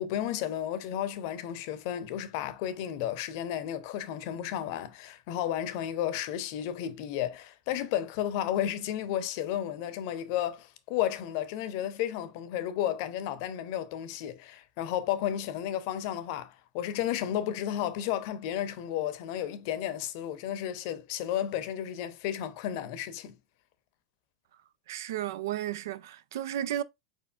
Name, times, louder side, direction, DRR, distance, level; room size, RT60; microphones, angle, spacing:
voice 1, 0.0-23.4, left 11 dB, 55° left, 0.7 m, -33 dB
voice 2, 24.9-26.8, right 12 dB, 65° right, 0.4 m, -33 dB
5.0 x 4.6 x 2.3 m
figure-of-eight pair, 85°, 2 cm